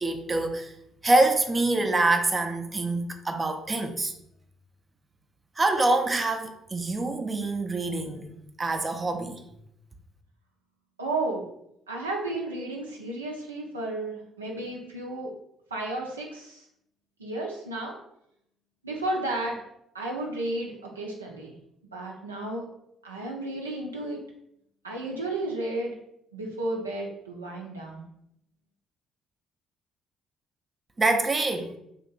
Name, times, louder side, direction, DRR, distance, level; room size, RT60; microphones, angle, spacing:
voice 1, 0.0-0.7 1.0-4.1 5.6-8.3 8.6-9.4 31.0-31.7, right 2 dB, 30° right, 6 dB, 0.4 m, -25 dB
voice 2, 11.0-11.4 11.9-15.3 15.7-16.6 17.2-17.9 18.8-19.6 19.9-21.5 21.9-22.6 23.0-24.2 24.8-26.0 26.3-28.1, right 2 dB, 90° right, -1 dB, 0.5 m, -33 dB
2.9 x 2.5 x 3.7 m, 0.75 s
figure-of-eight pair, 45°, 0 cm